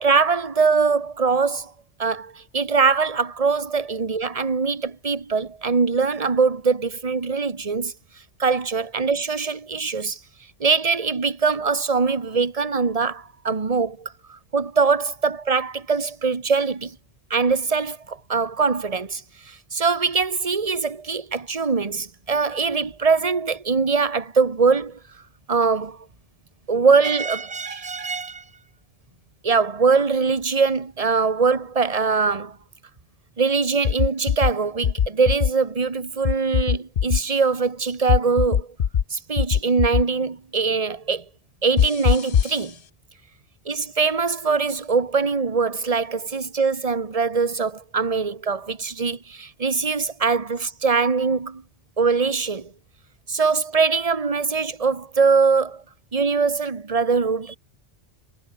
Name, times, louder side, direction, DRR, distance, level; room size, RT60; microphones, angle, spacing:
voice 1, 0.0-1.7 2.0-7.9 8.4-10.2 10.6-17.0 17.3-25.0 25.5-26.1 26.7-28.4 29.4-32.6 33.4-38.7 39.1-41.2 41.6-42.8 43.6-51.6 52.0-52.7 53.3-55.8 56.1-57.6, right 4 dB, 30° right, 1.5 m, -22 dB
sound 1, 33.8-34.5 34.8-35.5 36.2-37.2 38.1-39.0 39.4-40.0 41.8-42.6, left 8 dB, 55° left, 0.9 m, -20 dB
omnidirectional pair, 1.2 m